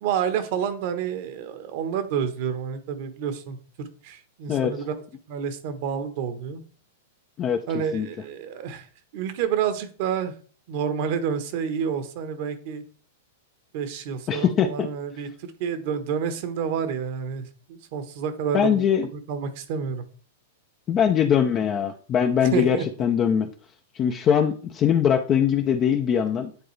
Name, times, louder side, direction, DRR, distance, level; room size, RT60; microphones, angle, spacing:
voice 1, 0.0-4.9 5.3-6.6 7.7-8.9 9.1-10.3 10.7-12.8 13.7-18.8 19.3-20.0 22.5-22.8, right 7 dB, 55° right, 10 dB, 1.2 m, -29 dB
voice 2, 4.5-4.8 7.4-8.1 14.3-14.9 18.5-19.1 20.9-23.5 23.9-26.5, left 8 dB, 30° left, 4 dB, 0.7 m, -22 dB
10.0 x 3.8 x 3.3 m, 0.41 s
hypercardioid pair, 120°, 0 cm